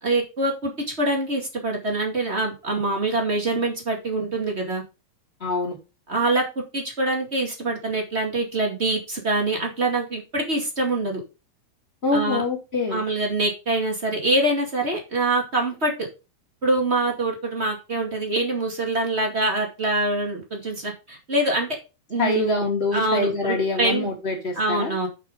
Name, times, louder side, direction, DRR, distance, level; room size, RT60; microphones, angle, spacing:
voice 1, 0.0-0.7 1.0-4.8 6.1-11.2 12.1-12.4 12.9-15.9 16.6-21.7 22.1-22.6 22.9-24.1 24.5-25.1, right 2 dB, 25° right, 1 dB, 1.5 m, -24 dB
voice 2, 5.4-5.8 12.0-13.0 22.2-24.9, left 3 dB, 15° left, 0 dB, 2.5 m, -25 dB
8.5 x 5.9 x 5.2 m, 0.29 s
omnidirectional pair, 4.6 m